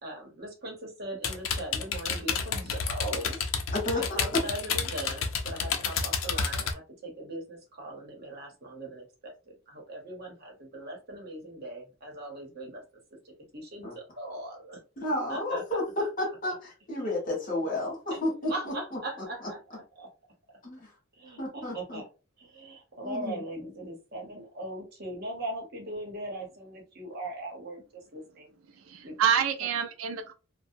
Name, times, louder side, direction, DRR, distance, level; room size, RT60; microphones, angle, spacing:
voice 1, 0.0-3.5 3.9-12.8 13.1-14.8 15.3-15.6 16.0-16.1 17.4-17.5 18.1-18.2 18.5-19.6 20.0-20.1 21.1-22.1 22.4-28.5 29.0-29.2, right 1 dB, 50° right, 0.9 m, -40 dB
sound 1, 1.2-6.7, left 6 dB, 75° left, 0.5 m, -30 dB
voice 2, 3.7-4.4 13.8-13.9 15.0-18.7 20.6-20.9 21.4-22.0 23.0-23.4, left 1 dB, 40° left, 1.3 m, -31 dB
voice 3, 28.7-30.3, right 7 dB, 80° right, 0.4 m, -28 dB
2.6 x 2.1 x 2.6 m
head